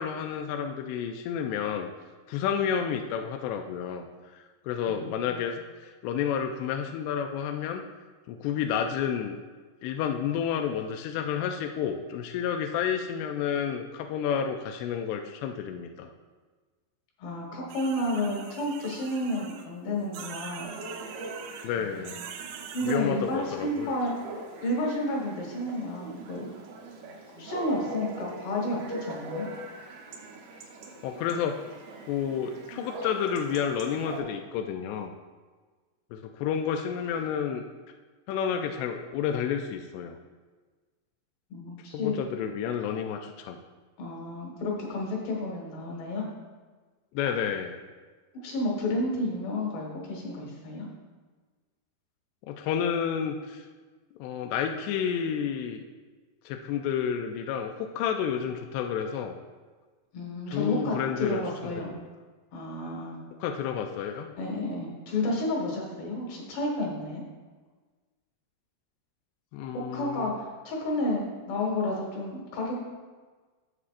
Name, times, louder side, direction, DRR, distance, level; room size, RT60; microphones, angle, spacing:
voice 1, 0.0-1.9 2.3-4.1 4.3-7.8 8.3-9.4 9.8-16.1 21.6-22.2 22.9-23.9 31.0-31.6 32.1-35.1 36.1-37.7 38.3-40.2 41.9-43.6 47.1-47.8 52.5-53.6 54.2-55.8 56.5-59.4 60.5-62.1 63.4-64.3 69.5-70.3, left 8 dB, 85° left, 4 dB, 2.4 m, -30 dB
voice 2, 4.9-5.5 17.2-20.7 21.8-22.3 22.7-24.2 24.6-26.5 27.4-29.5 41.5-42.2 44.0-46.3 48.4-50.9 60.1-61.9 62.5-63.2 64.4-67.2 69.9-70.3 70.6-72.8, left 1 dB, 70° left, -1 dB, 3.6 m, -31 dB
sound 1, 17.7-19.7 20.1-21.7 22.1-23.0, right 7 dB, 85° right, 3.0 m, -43 dB
Chatter / Bark / Livestock farm animals working animals, 20.6-34.2, right 2 dB, 70° right, 2.3 m, -42 dB
13.0 x 7.2 x 2.5 m, 1.4 s
omnidirectional pair, 5.2 m